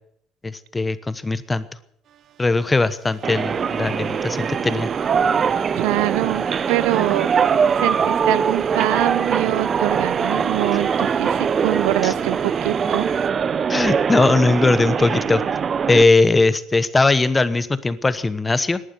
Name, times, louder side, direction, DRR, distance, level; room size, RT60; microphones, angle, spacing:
voice 1, 0.4-1.7 2.4-4.9 12.0-12.1 13.7-15.4 15.9-18.8, left 3 dB, 15° left, 15 dB, 1.0 m, -19 dB
sound 1, 2.0-13.3, right 10 dB, 50° right, 1.0 m, -40 dB
sound 2, 3.2-16.0, right 6 dB, 35° right, 0.6 m, -22 dB
voice 2, 5.8-7.3 7.7-13.1, right 19 dB, 90° right, 20 dB, 0.7 m, -24 dB
18.5 x 11.5 x 6.8 m, 0.70 s
cardioid pair, 125°, 0 cm